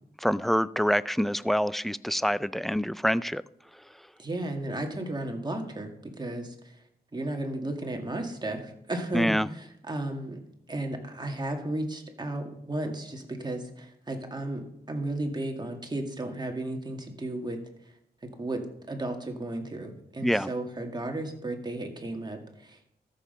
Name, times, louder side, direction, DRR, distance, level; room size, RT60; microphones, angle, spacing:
voice 1, 0.2-3.4 9.1-9.5 20.2-20.5, equal, ahead, 17 dB, 0.4 m, -26 dB
voice 2, 4.2-6.8 7.1-10.4 10.7-17.6 18.2-23.0, right 1 dB, 25° right, 3 dB, 2.1 m, -34 dB
13.0 x 7.2 x 5.6 m, 0.75 s
wide cardioid pair, 90°, 16 cm